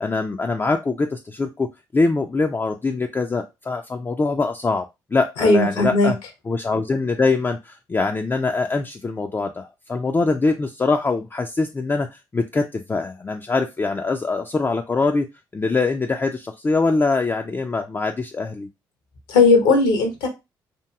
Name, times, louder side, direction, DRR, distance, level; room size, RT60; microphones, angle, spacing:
voice 1, 0.0-1.7 1.9-4.8 5.1-6.2 6.5-15.3 15.5-18.7, left 3 dB, 20° left, 4 dB, 0.3 m, -23 dB
voice 2, 5.4-6.1 19.3-20.3, left 3 dB, 75° left, 3 dB, 0.8 m, -16 dB
2.9 x 2.5 x 2.3 m, 0.24 s
hypercardioid pair, 45°, 11 cm